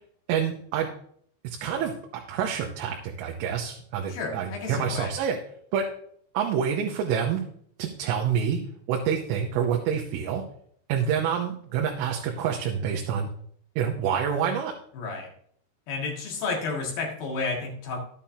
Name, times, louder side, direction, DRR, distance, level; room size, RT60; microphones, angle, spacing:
voice 1, 0.3-0.9 1.4-1.9 2.3-5.4 5.7-5.8 6.3-7.4 7.8-8.6 8.9-10.4 10.9-13.3 13.8-14.7, right 8 dB, 85° right, 1 dB, 3.3 m, -27 dB
voice 2, 4.1-5.1 14.9-15.3 15.9-18.0, left 4 dB, 60° left, -1 dB, 3.3 m, -31 dB
12.0 x 8.6 x 2.8 m, 0.63 s
omnidirectional pair, 5.4 m